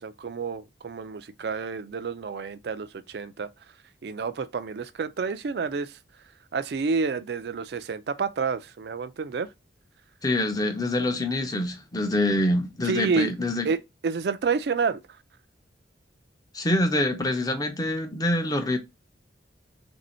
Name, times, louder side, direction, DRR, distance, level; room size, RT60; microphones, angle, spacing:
voice 1, 0.0-3.5 4.0-6.0 6.5-9.5 12.8-13.3 13.6-15.0, right 5 dB, 60° right, 0.4 m, -29 dB
voice 2, 10.2-13.7 16.5-18.8, left 1 dB, 20° left, 0.6 m, -25 dB
3.4 x 2.6 x 4.2 m
head